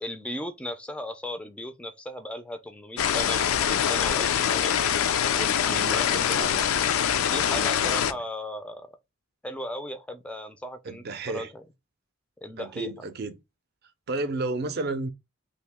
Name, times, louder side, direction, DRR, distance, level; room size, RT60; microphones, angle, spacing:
voice 1, 0.0-4.7 5.4-6.5 7.2-8.9 9.4-11.6 12.4-12.9, left 1 dB, 5° left, 0.3 m, -36 dB
sound 1, 3.0-8.1, left 9 dB, 85° left, 0.4 m, -24 dB
voice 2, 5.6-6.6 7.4-8.2 10.9-11.5 12.6-13.4 14.1-15.1, right 2 dB, 50° right, 0.5 m, -33 dB
2.9 x 2.6 x 3.4 m
head